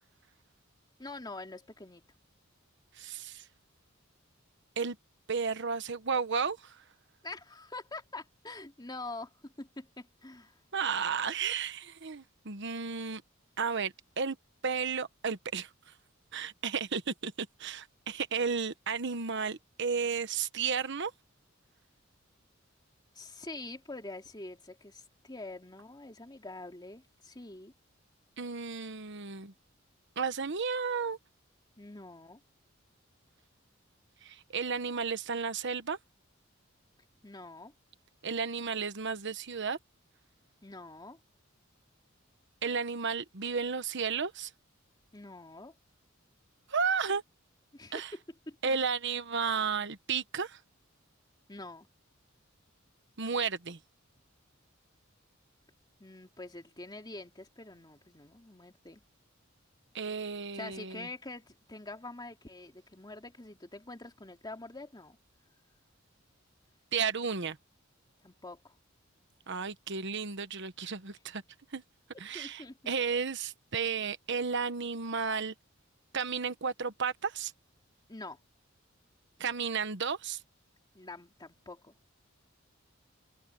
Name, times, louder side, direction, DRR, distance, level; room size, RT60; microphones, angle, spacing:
voice 1, 1.0-2.0 7.2-10.6 23.1-27.7 31.8-32.4 37.2-37.7 40.6-41.2 45.1-45.7 47.7-48.2 48.5-48.8 51.5-51.9 56.0-59.0 60.5-65.2 68.2-68.7 72.3-72.9 78.1-78.4 80.9-81.9, left 2 dB, 20° left, 2.6 m, -45 dB
voice 2, 3.0-3.4 4.8-5.0 5.3-6.8 10.7-13.2 13.6-14.4 14.6-15.7 16.3-21.1 28.4-29.5 30.2-31.2 34.2-36.0 38.2-39.8 42.6-44.5 46.7-47.2 47.9-48.1 48.6-50.6 53.2-53.8 59.9-61.1 66.9-67.6 69.5-71.4 71.7-71.8 72.2-75.5 76.1-77.5 79.4-80.4, right 5 dB, 60° right, 1.2 m, -33 dB
head